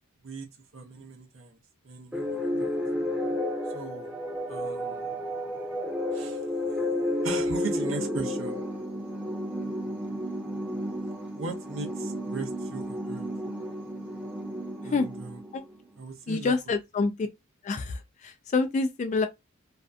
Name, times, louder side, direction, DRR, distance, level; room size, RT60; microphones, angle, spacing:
voice 1, 0.7-1.6 1.8-2.8 3.7-4.1 4.5-5.1 6.1-6.5 7.2-8.7 11.3-13.3 14.8-15.4 16.0-16.6, right 3 dB, 70° right, 0.6 m, -38 dB
sound 1, 2.1-15.8, left 1 dB, 5° right, 0.7 m, -32 dB
voice 2, 16.3-17.1 17.6-17.9 18.2-19.3, left 4 dB, 35° left, 0.3 m, -26 dB
2.5 x 2.2 x 2.4 m
head